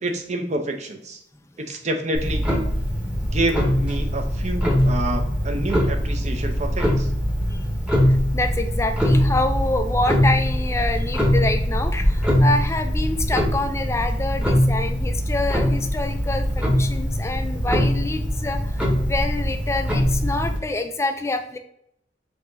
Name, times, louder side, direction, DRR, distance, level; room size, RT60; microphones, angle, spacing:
voice 1, 0.0-1.2 1.7-2.4 3.3-7.1, right 1 dB, 40° right, 4 dB, 0.6 m, -28 dB
Clock, 2.1-20.6, equal, 5° right, 0.9 m, -22 dB
voice 2, 8.1-21.6, left 2 dB, 15° left, 6 dB, 0.4 m, -26 dB
5.5 x 2.8 x 2.6 m, 0.73 s
head